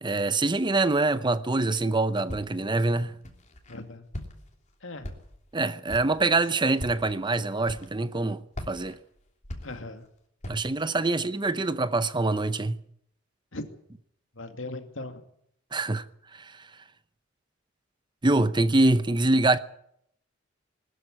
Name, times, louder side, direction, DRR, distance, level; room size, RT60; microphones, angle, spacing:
voice 1, 0.0-3.2 5.5-9.0 10.5-12.8 15.7-16.0 16.3-16.6 18.2-19.6, right 2 dB, 25° right, 0.7 m, -25 dB
Walk footsteps, 2.3-2.7 3.2-3.8 4.1-4.6 5.0-5.5 5.9-6.2 6.7-7.1 7.6-8.2 8.5-10.1 10.4-10.8, equal, 35° left, 3.1 m, -40 dB
voice 2, 3.7-4.1 4.8-5.1 9.6-10.0 11.0-11.1 13.5-13.7 14.4-15.2, left 2 dB, 70° left, 2.4 m, -38 dB
20.5 x 13.0 x 9.8 m
head